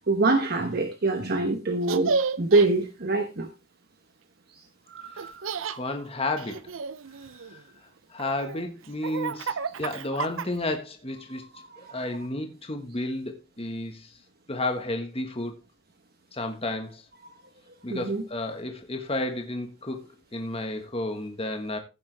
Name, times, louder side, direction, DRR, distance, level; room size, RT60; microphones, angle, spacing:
voice 1, 0.1-3.5 4.9-5.3 11.8-11.9 17.9-18.2, right 3 dB, 50° right, 1.1 m, -24 dB
Laughter, 1.8-2.7 5.2-5.8 6.4-7.6 8.2-10.8, right 5 dB, 70° right, 0.6 m, -31 dB
voice 2, 5.8-6.7 7.5-7.6 8.1-11.4 11.8-14.1 14.5-15.6 16.3-17.0 17.8-20.0 20.3-21.8, left 2 dB, 30° left, 1.5 m, -32 dB
15.0 x 7.0 x 3.4 m
head